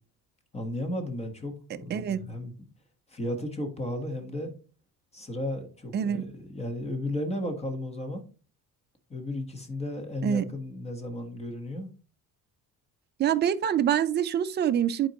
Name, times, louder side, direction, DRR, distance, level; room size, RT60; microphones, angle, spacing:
voice 1, 0.5-2.7 3.1-4.5 5.1-8.2 9.1-11.9, left 1 dB, 20° left, 1.3 m, -34 dB
voice 2, 5.9-6.2 10.2-10.4 13.2-15.1, right 9 dB, 30° right, 0.5 m, -25 dB
9.9 x 4.5 x 3.0 m
cardioid pair, 150°, 35 cm